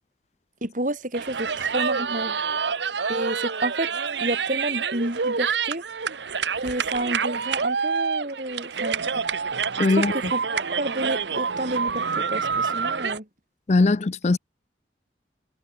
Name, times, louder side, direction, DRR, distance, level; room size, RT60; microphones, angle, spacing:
voice 1, 0.6-2.4 3.1-3.9 4.2-5.8 6.6-9.0 10.0-13.3, right 1 dB, 45° right, 4.2 m, -30 dB
sound 1, 1.1-13.2, right 6 dB, 85° right, 1.1 m, -27 dB
voice 2, 9.8-10.1 13.7-14.4, left 3 dB, 40° left, 0.5 m, -20 dB
head